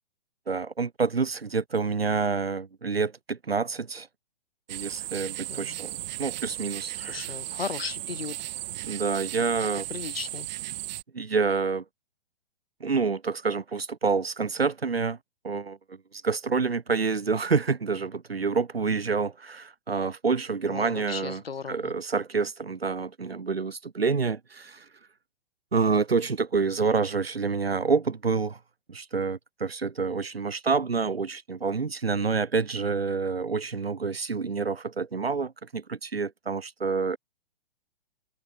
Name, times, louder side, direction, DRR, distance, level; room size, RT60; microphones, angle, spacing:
voice 1, 0.5-4.1 4.7-7.3 8.8-9.9 11.1-11.8 12.8-15.2 15.4-15.8 16.1-21.4 21.7-24.8 25.7-28.6 28.9-37.2, right 4 dB, 85° right, 2.9 m, -28 dB
sound 1, 4.7-11.0, right 16 dB, 45° right, 3.5 m, -36 dB
voice 2, 7.0-8.4 9.9-10.5 20.6-21.9, left 6 dB, 75° left, 3.2 m, -36 dB
figure-of-eight pair, 115°, 30 cm